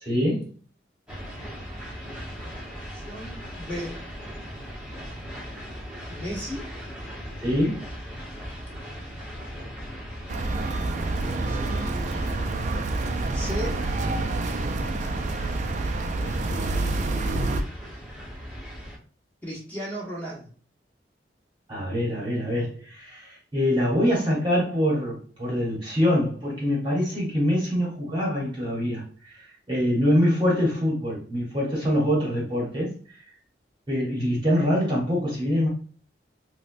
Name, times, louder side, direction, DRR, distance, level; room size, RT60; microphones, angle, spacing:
voice 1, 0.0-0.5 7.4-7.8 21.7-29.3 29.7-32.9 33.9-35.7, equal, 25° right, -5 dB, 1.1 m, -24 dB
sound 1, 1.1-19.0, equal, 5° right, 1.1 m, -39 dB
voice 2, 2.7-4.0 6.1-6.7 11.1-11.9 13.3-13.8 19.4-20.5, equal, 10° left, -6 dB, 1.4 m, -36 dB
sound 2, 10.3-17.6, right 2 dB, 45° right, 0.4 m, -27 dB
4.2 x 2.2 x 2.6 m, 0.42 s
head